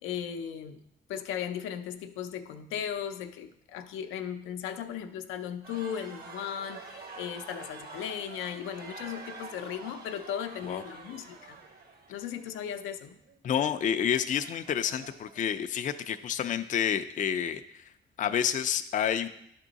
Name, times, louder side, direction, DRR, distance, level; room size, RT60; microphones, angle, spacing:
voice 1, 0.0-0.8 1.1-11.6 12.1-13.2, left 9 dB, 90° left, 7 dB, 0.5 m, -37 dB
sound 1, 5.6-15.6, right 3 dB, 50° right, 1.2 m, -47 dB
voice 2, 13.4-17.9 18.2-19.3, left 9 dB, 40° left, 9 dB, 0.4 m, -29 dB
10.0 x 3.6 x 3.9 m, 0.77 s
cardioid pair, 90°, 20 cm